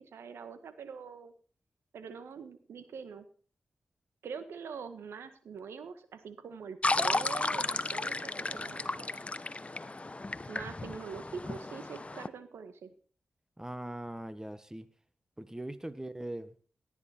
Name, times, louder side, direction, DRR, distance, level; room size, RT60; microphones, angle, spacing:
voice 1, 0.0-1.3 1.9-3.3 4.2-9.1 10.5-12.9, right 6 dB, 85° right, 11 dB, 1.6 m, -44 dB
sound 1, 6.8-12.3, left 2 dB, 30° left, 0.9 m, -34 dB
voice 2, 13.6-14.9 15.4-16.5, right 1 dB, 15° right, 13 dB, 1.6 m, -40 dB
18.0 x 10.0 x 4.5 m, 0.41 s
supercardioid pair, 40°, 4 cm